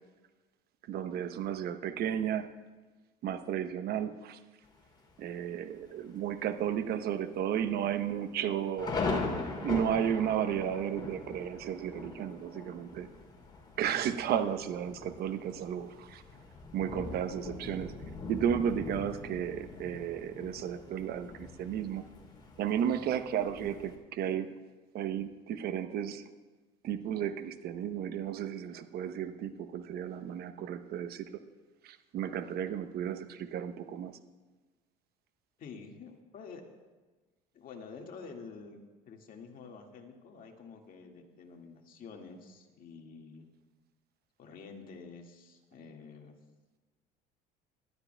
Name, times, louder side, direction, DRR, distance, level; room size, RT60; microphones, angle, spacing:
voice 1, 0.9-2.5 3.2-4.4 5.2-9.0 9.6-13.1 13.8-16.2 16.7-18.0 18.3-22.0 22.6-24.5 24.9-26.2 26.8-31.4 31.8-34.2, right 9 dB, 60° right, 10 dB, 0.9 m, -33 dB
Thunder, 4.6-5.2 5.7-5.8 6.1-6.5 6.9-7.0 7.7-24.0, left 3 dB, 25° left, 3.1 m, -41 dB
voice 2, 35.6-36.6 37.5-38.8 39.0-43.4 44.4-46.4, left 5 dB, 50° left, 2 dB, 1.9 m, -48 dB
20.0 x 12.5 x 2.3 m, 1.3 s
supercardioid pair, 90°, 18 cm